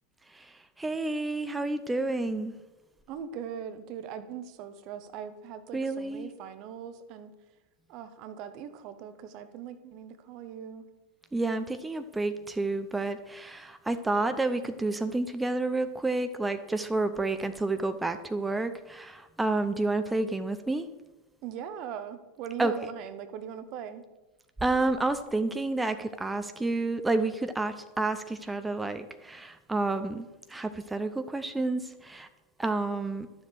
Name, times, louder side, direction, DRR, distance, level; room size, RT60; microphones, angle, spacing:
voice 1, 0.3-2.5 5.7-6.3 11.3-20.9 22.6-22.9 24.6-32.3 32.6-33.3, right 2 dB, 10° right, 9 dB, 0.8 m, -30 dB
voice 2, 3.1-7.3 7.9-10.8 21.4-24.0, right 8 dB, 50° right, 11 dB, 1.1 m, -40 dB
12.0 x 7.3 x 6.7 m, 1.1 s
figure-of-eight pair, 80°, 0 cm